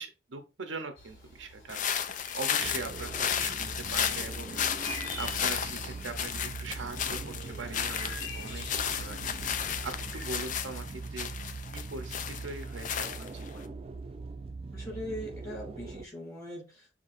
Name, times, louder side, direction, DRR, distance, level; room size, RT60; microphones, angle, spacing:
voice 1, 0.0-4.5 5.2-9.2 9.8-11.3 11.7-13.7, right 4 dB, 90° right, 0.8 m, -41 dB
sound 1, 1.0-10.5, left 2 dB, 70° left, 1.9 m, -46 dB
sound 2, 1.7-13.6, left 8 dB, 45° left, 0.4 m, -34 dB
sound 3, 2.6-16.0, right 3 dB, 30° right, 0.3 m, -41 dB
voice 2, 14.7-16.9, equal, 20° left, 2.7 m, -40 dB
6.0 x 2.9 x 2.5 m
head